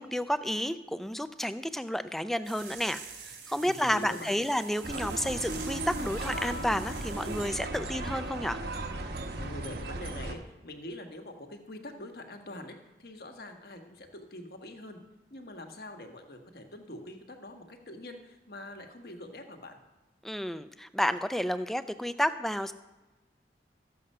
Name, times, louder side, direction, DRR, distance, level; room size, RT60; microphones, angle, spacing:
voice 1, 0.0-8.6 20.2-22.7, equal, ahead, 11 dB, 0.4 m, -31 dB
sound 1, 2.4-7.7, right 6 dB, 90° right, 2.7 m, -46 dB
voice 2, 3.6-4.4 9.4-15.0 15.3-19.8, left 1 dB, 55° left, 4 dB, 1.4 m, -44 dB
sound 2, 4.8-10.4, right 2 dB, 60° right, 1.0 m, -36 dB
Guitar, 6.3-8.8, left 1 dB, 75° left, 0.8 m, -46 dB
13.5 x 7.6 x 5.5 m, 1.1 s
head